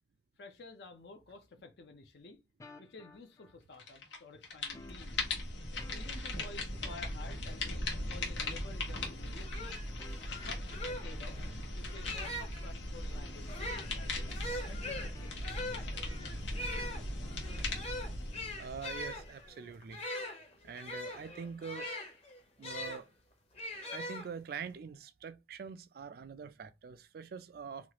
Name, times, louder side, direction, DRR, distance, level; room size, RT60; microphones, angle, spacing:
voice 1, 0.4-2.4 2.8-5.2 5.7-9.7 10.4-15.8, left 3 dB, 65° left, 0.6 m, -52 dB
sound 1, 2.6-3.9 4.7-7.8 8.9-11.6 13.1-13.7 14.1-15.7 17.2-17.8, left 2 dB, 20° left, 0.3 m, -56 dB
sound 2, 3.8-4.2 4.4-19.4, left 2 dB, 90° left, 1.0 m, -39 dB
sound 3, 9.1-9.2 9.4-12.7 13.4-23.0 23.6-24.7, left 1 dB, 35° left, 0.8 m, -42 dB
voice 2, 18.6-20.0 20.6-21.9 22.6-23.1 23.9-27.9, right 6 dB, 55° right, 0.3 m, -44 dB
3.1 x 2.3 x 2.9 m
head